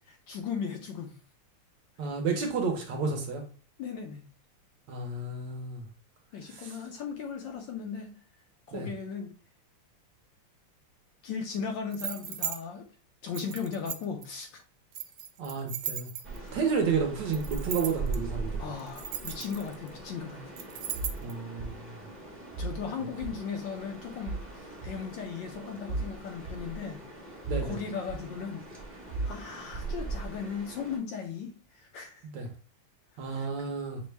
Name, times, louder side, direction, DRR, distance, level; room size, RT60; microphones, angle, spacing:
voice 1, 0.1-1.1 3.8-4.3 6.3-8.1 8.7-9.3 11.2-12.9 13.2-14.6 18.6-20.4 22.6-27.0 27.6-28.6 29.2-31.5 31.8-32.2 33.3-33.5, left 6 dB, 70° left, 1.2 m, -37 dB
voice 2, 2.0-3.4 4.9-5.8 6.5-6.8 8.7-8.9 15.4-16.1 16.5-18.6 21.2-21.9 27.5-27.8 32.2-32.5 33.2-34.0, right 5 dB, 65° right, 1.3 m, -31 dB
sound 1, 11.9-12.6 13.3-14.2 14.9-16.5 17.3-18.2 18.8-19.9 20.6-21.3, right 9 dB, 85° right, 1.5 m, -37 dB
sound 2, 16.2-31.0, right 3 dB, 15° right, 0.5 m, -41 dB
sound 3, 20.9-21.2 21.6-21.7 22.5-22.8 23.2-23.3 24.2-24.4 24.8-24.9 25.9-26.1 26.4-26.5 27.4-27.7 28.1-28.2 29.1-29.3 29.7-29.9, right 2 dB, 35° right, 1.0 m, -34 dB
6.1 x 2.1 x 3.2 m
omnidirectional pair, 2.3 m